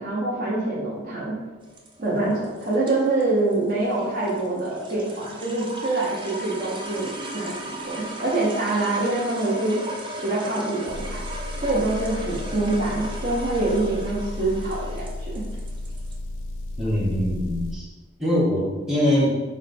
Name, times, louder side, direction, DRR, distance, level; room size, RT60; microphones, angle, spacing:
voice 1, 0.0-1.4 2.0-9.8 10.2-11.2 11.5-15.4, right 2 dB, 45° right, -7 dB, 0.7 m, -25 dB
sound 1, 1.6-16.2, right 1 dB, 25° right, 0.3 m, -37 dB
Motor vehicle (road) / Engine, 10.9-17.8, left 1 dB, 70° left, 0.4 m, -33 dB
voice 2, 16.8-17.9 18.2-19.4, left 1 dB, 5° right, -8 dB, 1.0 m, -22 dB
4.2 x 2.2 x 4.1 m, 1.3 s
head